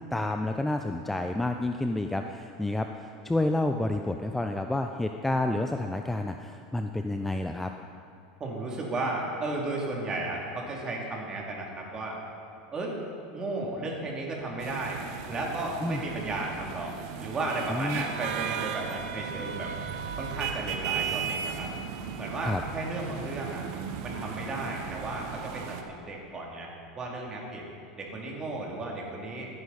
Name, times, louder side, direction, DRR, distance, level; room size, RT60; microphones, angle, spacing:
voice 1, 0.1-7.7 15.8-16.0 17.7-18.1 22.4-22.6, left 2 dB, 5° left, 5 dB, 0.5 m, -29 dB
voice 2, 8.4-12.2 12.7-13.0 13.3-15.0 15.3-16.9 17.2-19.7 20.2-21.7 22.2-23.6 24.0-26.7 27.0-27.6 28.0-29.5, right 2 dB, 25° right, -2 dB, 2.8 m, -34 dB
sound 1, 14.6-25.8, right 7 dB, 65° right, 1.0 m, -36 dB
14.5 x 9.9 x 4.2 m, 2.7 s
supercardioid pair, 115°, 3 cm